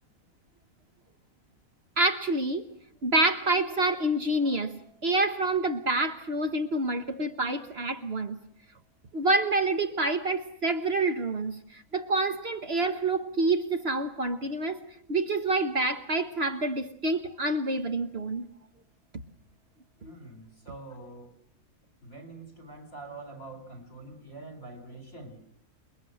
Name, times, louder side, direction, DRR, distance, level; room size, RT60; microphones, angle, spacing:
voice 1, 2.0-2.7 3.0-8.4 9.1-18.4 20.0-20.1, right 2 dB, 45° right, 1.4 m, -27 dB
voice 2, 20.0-21.3 22.0-25.4, right 2 dB, 60° left, 4.7 m, -45 dB
28.5 x 21.5 x 7.8 m
omnidirectional pair, 1.6 m